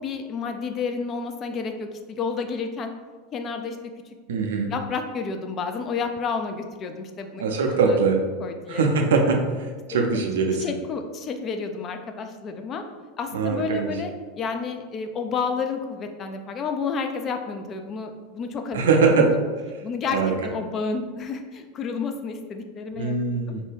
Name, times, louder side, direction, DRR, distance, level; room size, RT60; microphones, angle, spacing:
voice 1, 0.0-2.9 3.3-3.8 4.3-4.4 4.7-7.4 7.7-8.0 8.4-8.8 9.9-10.0 10.6-12.8 13.2-18.9 19.8-23.4, left 5 dB, 35° left, 6 dB, 0.3 m, -30 dB
voice 2, 4.3-4.7 7.4-8.2 8.7-10.6 13.3-13.9 18.7-19.3 20.1-20.3 23.0-23.6, right 4 dB, 75° right, 3 dB, 0.4 m, -22 dB
2.6 x 2.2 x 3.3 m, 1.4 s
hypercardioid pair, 90°, 0 cm